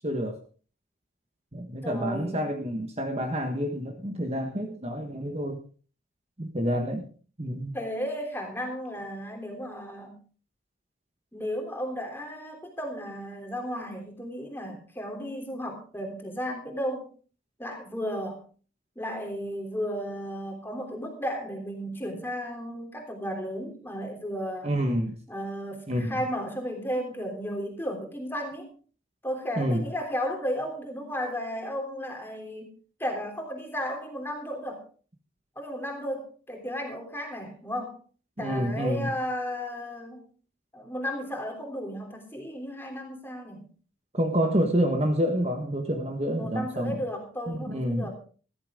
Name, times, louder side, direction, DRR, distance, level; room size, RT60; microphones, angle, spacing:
voice 1, 0.0-0.4 1.5-5.6 6.4-7.1 7.4-7.7 24.6-25.2 25.9-26.2 29.6-29.9 38.4-39.1 44.1-47.0 47.5-48.1, equal, 30° right, 4 dB, 1.4 m, -28 dB
voice 2, 1.8-2.4 7.7-10.2 11.3-17.1 17.6-18.4 18.9-24.8 25.3-28.7 29.2-32.7 33.0-34.8 35.5-38.0 38.4-40.3 40.7-43.6 46.4-48.1, equal, 10° left, 2 dB, 3.2 m, -34 dB
14.5 x 14.0 x 3.7 m, 0.40 s
head